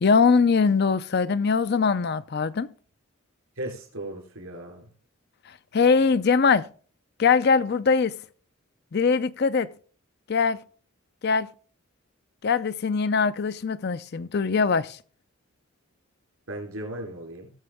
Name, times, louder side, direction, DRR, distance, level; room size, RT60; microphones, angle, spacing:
voice 1, 0.0-2.7 5.7-6.7 7.2-8.1 8.9-9.7 10.3-10.6 11.2-11.5 12.4-15.0, left 5 dB, 50° left, 0.4 m, -22 dB
voice 2, 3.6-4.9 16.5-17.5, right 1 dB, 75° right, 3.7 m, -36 dB
18.5 x 6.8 x 3.5 m
head